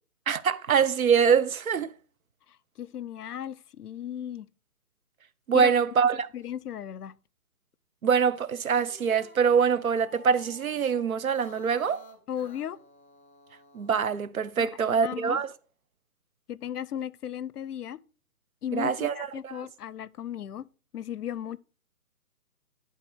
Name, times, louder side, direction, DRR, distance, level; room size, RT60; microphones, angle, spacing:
voice 1, 0.3-1.9 5.5-6.3 8.0-12.0 13.7-15.5 18.7-19.2 19.4-19.5, right 6 dB, 65° right, 0.8 m, -24 dB
voice 2, 2.8-4.5 5.5-5.7 6.1-7.1 12.3-12.8 14.6-15.4 16.5-18.0 18.6-20.7 20.9-21.6, left 10 dB, 90° left, 0.6 m, -36 dB
sound 1, 8.7-14.2, left 1 dB, 45° left, 3.1 m, -52 dB
11.0 x 3.9 x 4.5 m
hypercardioid pair, 180°, 45 cm